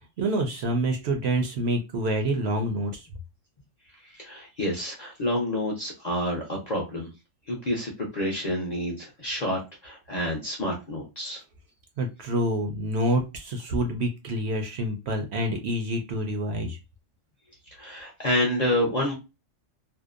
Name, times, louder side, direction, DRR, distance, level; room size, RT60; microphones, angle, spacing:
voice 1, 0.2-3.1 12.0-16.8, right 1 dB, 65° right, 4 dB, 0.8 m, -27 dB
voice 2, 4.0-7.1 7.5-11.4 17.7-19.1, left 1 dB, 45° left, -2 dB, 0.5 m, -28 dB
2.7 x 2.0 x 2.3 m, 0.26 s
omnidirectional pair, 1.4 m